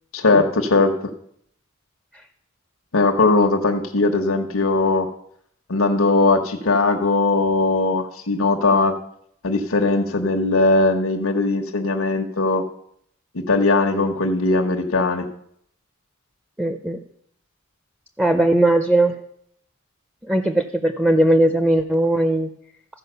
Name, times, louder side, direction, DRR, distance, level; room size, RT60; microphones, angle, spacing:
voice 1, 0.1-1.1 2.9-5.1 5.7-8.9 9.4-12.6 13.3-15.3, left 3 dB, 85° left, 3 dB, 1.1 m, -19 dB
voice 2, 16.6-17.0 18.2-19.1 20.3-22.5, right 1 dB, 5° right, 7 dB, 0.6 m, -18 dB
14.0 x 5.1 x 6.8 m, 0.68 s
head